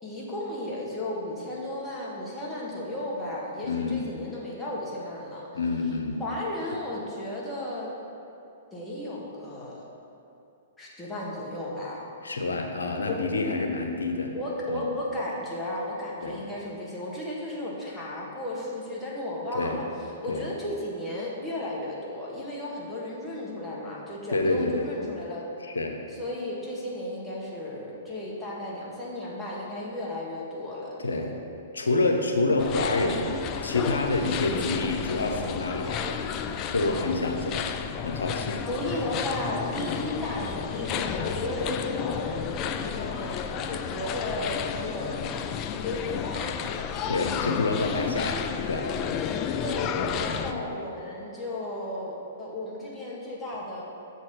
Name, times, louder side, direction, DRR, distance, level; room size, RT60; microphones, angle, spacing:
voice 1, 0.0-5.5 6.2-7.9 8.7-9.8 10.8-12.0 13.0-13.1 14.3-19.8 20.2-25.4 26.1-31.3 38.7-45.2 45.7-46.8 49.6-53.8, left 1 dB, 10° left, -6 dB, 1.7 m, -34 dB
voice 2, 3.6-4.0 5.5-6.2 12.2-14.3 14.7-14.9 16.2-16.4 19.5-19.8 20.3-20.4 24.3-24.8 25.6-25.9 31.0-31.3 31.7-33.3 33.6-36.2 36.7-37.7 38.0-38.6 39.8-40.0 47.1-48.9 50.5-50.7, left 2 dB, 85° left, 3 dB, 0.9 m, -27 dB
sound 1, 32.6-50.5, left 8 dB, 35° left, 0.4 m, -32 dB
7.0 x 4.2 x 6.4 m, 2.8 s
hypercardioid pair, 120°, 0 cm